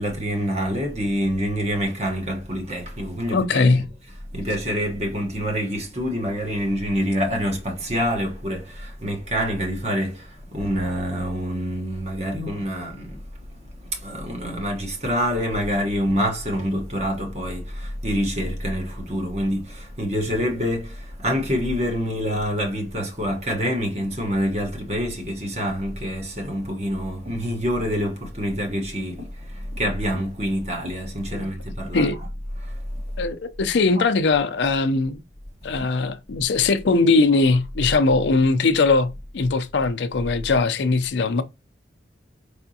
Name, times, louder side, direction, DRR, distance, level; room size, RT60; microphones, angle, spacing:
voice 1, 0.0-32.3 32.5-33.0 34.0-34.1, equal, 35° right, 1.1 m, -26 dB
voice 2, 3.3-3.8 31.3-31.5 31.9-32.2 33.2-35.2 35.6-41.4, left 3 dB, 75° left, 0.5 m, -20 dB
4.8 x 3.4 x 2.7 m
head